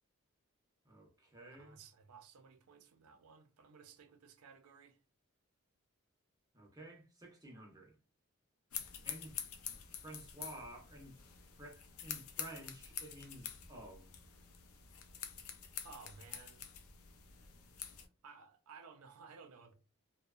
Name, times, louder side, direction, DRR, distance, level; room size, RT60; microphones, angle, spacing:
voice 1, 0.8-1.8 6.5-8.0 9.0-11.2 11.6-14.1, right 1 dB, 15° right, 0.5 m, -52 dB
voice 2, 1.6-5.0 15.8-16.6 18.2-19.7, right 5 dB, 85° right, 0.4 m, -57 dB
sound 1, 8.7-18.1, left 9 dB, 80° left, 0.4 m, -47 dB
2.6 x 2.0 x 2.3 m
head